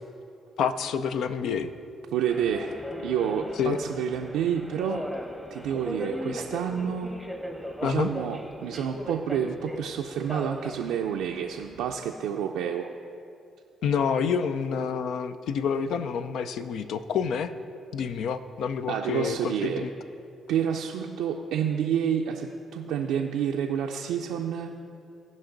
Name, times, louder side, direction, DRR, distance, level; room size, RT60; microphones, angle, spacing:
voice 1, 0.6-1.7 3.6-3.8 7.8-8.1 13.8-17.5 17.9-19.9, left 6 dB, 75° left, 11 dB, 0.4 m, -28 dB
voice 2, 2.1-2.7 3.0-5.0 5.5-7.1 7.8-12.9 18.9-19.8 20.5-24.7, right 8 dB, 90° right, 1 dB, 0.4 m, -29 dB
Subway metro underground, 2.3-12.0, equal, 10° left, 1.0 m, -38 dB
15.0 x 5.3 x 3.9 m, 2.5 s
supercardioid pair, 70°, 0 cm